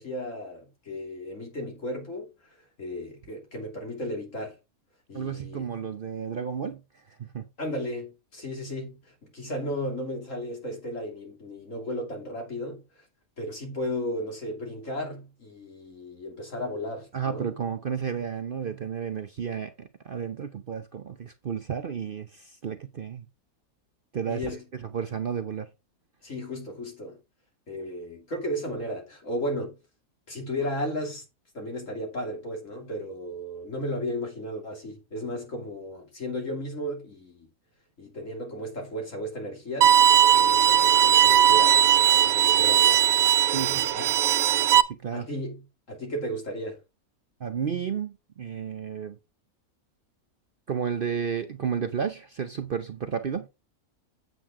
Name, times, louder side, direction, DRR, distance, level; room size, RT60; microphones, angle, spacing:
voice 1, 0.0-2.3 2.8-4.5 5.1-5.7 7.6-12.8 13.4-17.5 24.3-24.6 26.2-27.2 27.7-29.8 30.3-31.2 31.5-37.5 38.0-40.0 40.4-43.0 43.5-44.1 45.1-46.8, equal, 60° left, 3.2 m, -34 dB
voice 2, 5.1-7.5 17.1-23.3 24.1-25.7 43.5-43.9 44.8-45.3 47.4-49.2 50.7-53.5, right 7 dB, 50° right, 0.7 m, -32 dB
Bowed string instrument, 39.8-44.8, right 9 dB, 80° right, 1.1 m, -19 dB
8.0 x 7.7 x 3.6 m
omnidirectional pair, 1.5 m